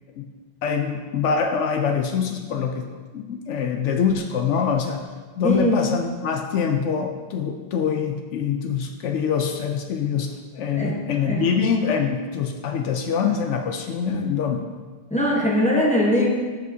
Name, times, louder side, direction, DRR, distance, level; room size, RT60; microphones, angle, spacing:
voice 1, 0.6-2.9 3.1-5.0 5.4-14.6, left 6 dB, 80° left, 5 dB, 0.9 m, -24 dB
voice 2, 5.4-5.9 10.7-11.0 11.2-11.5 15.1-16.3, left 1 dB, 5° left, -3 dB, 1.0 m, -21 dB
12.0 x 5.0 x 2.7 m, 1.4 s
omnidirectional pair, 1.2 m